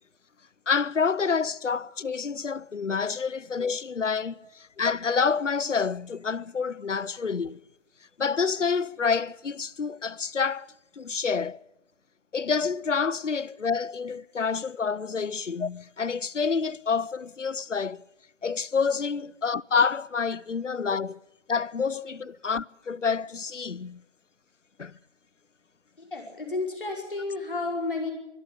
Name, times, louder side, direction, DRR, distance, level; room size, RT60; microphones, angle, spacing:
voice 1, 0.7-7.6 8.2-11.6 12.3-18.0 18.4-21.2 21.5-24.0 24.8-24.9, left 5 dB, 80° left, 0.7 m, -28 dB
voice 2, 26.0-28.1, left 3 dB, 45° left, 5.4 m, -32 dB
24.0 x 13.0 x 8.9 m
figure-of-eight pair, 165°, 36 cm